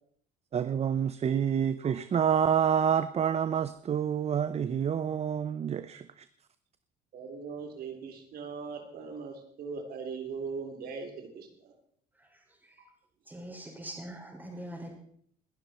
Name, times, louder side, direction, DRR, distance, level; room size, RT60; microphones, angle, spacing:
voice 1, 0.5-6.0, right 8 dB, 40° right, 0.7 m, -28 dB
voice 2, 7.1-11.7, right 5 dB, 65° right, 3.5 m, -40 dB
voice 3, 13.3-15.0, right 1 dB, 10° right, 5.5 m, -42 dB
21.0 x 12.0 x 4.4 m
cardioid pair, 110°, 17 cm